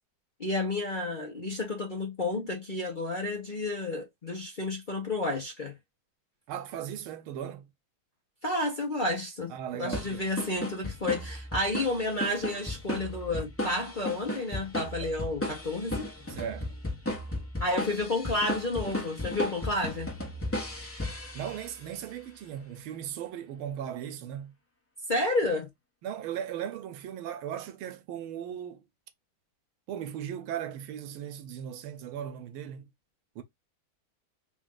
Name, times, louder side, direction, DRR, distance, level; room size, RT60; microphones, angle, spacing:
voice 1, 0.4-5.7 8.4-16.1 17.6-20.1 25.1-25.7, left 2 dB, 35° left, 0.8 m, -31 dB
voice 2, 6.5-7.7 9.5-10.3 15.0-15.1 16.3-16.7 21.3-24.5 26.0-28.8 29.9-32.8 33.3-33.4, right 9 dB, 90° right, 1.6 m, -37 dB
sound 1, 9.9-21.9, left 1 dB, 10° left, 1.1 m, -35 dB
3.9 x 2.6 x 3.7 m
omnidirectional pair, 2.2 m